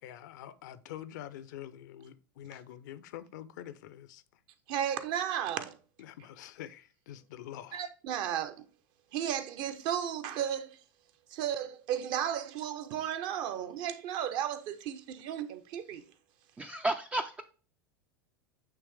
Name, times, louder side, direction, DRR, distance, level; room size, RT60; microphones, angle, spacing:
voice 1, 0.0-4.4 6.0-7.8, left 11 dB, 55° left, 0.6 m, -46 dB
voice 2, 4.7-5.8 7.7-8.6 9.1-10.8 11.3-16.0, right 10 dB, 40° right, 0.7 m, -34 dB
voice 3, 16.6-17.4, right 2 dB, 10° right, 0.4 m, -32 dB
9.1 x 3.2 x 3.3 m
figure-of-eight pair, 85°, 12 cm